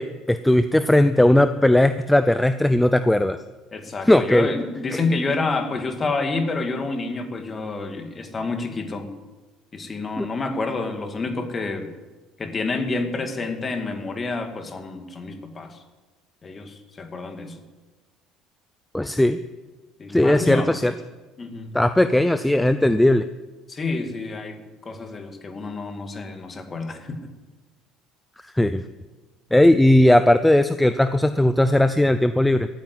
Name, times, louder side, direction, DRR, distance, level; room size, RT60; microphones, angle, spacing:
voice 1, 0.0-3.4 4.0-4.5 4.9-5.0 10.2-10.3 18.9-19.4 20.1-20.9 21.7-23.3 28.5-28.8 29.5-32.7, left 1 dB, 5° left, 11 dB, 0.5 m, -18 dB
voice 2, 3.7-9.2 9.7-11.9 12.4-15.8 16.4-17.6 20.0-20.8 21.4-21.8 23.7-27.2, left 3 dB, 25° left, 6 dB, 2.1 m, -28 dB
15.0 x 9.2 x 9.6 m, 1.2 s
cardioid pair, 120°, 0 cm